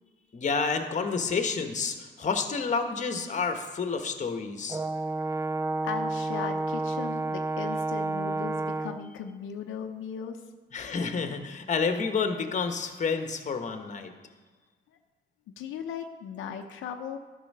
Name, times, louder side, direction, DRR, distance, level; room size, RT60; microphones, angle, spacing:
voice 1, 0.3-4.8 10.7-14.1, left 5 dB, 40° left, 6 dB, 1.2 m, -29 dB
Brass instrument, 4.7-9.1, right 2 dB, 15° right, 0.4 m, -30 dB
voice 2, 5.8-10.4 15.6-17.2, left 7 dB, 85° left, 4 dB, 0.7 m, -37 dB
12.0 x 5.6 x 5.5 m, 1.4 s
cardioid pair, 90°, 20 cm